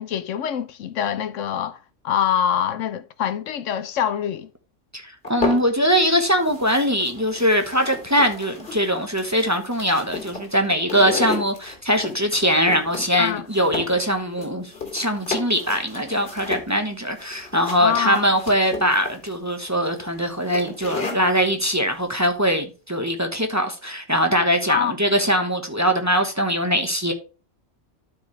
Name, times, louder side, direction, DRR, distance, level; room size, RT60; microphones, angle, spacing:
voice 1, 0.0-1.8 2.0-4.5 13.2-13.4 17.8-18.3 24.7-24.9, left 9 dB, 75° left, 1.0 m, -24 dB
voice 2, 4.9-27.1, equal, 15° right, 1.1 m, -22 dB
sound 1, 5.2-6.1 6.4-21.4, left 4 dB, 50° left, 2.5 m, -33 dB
12.5 x 4.8 x 3.1 m
omnidirectional pair, 1.3 m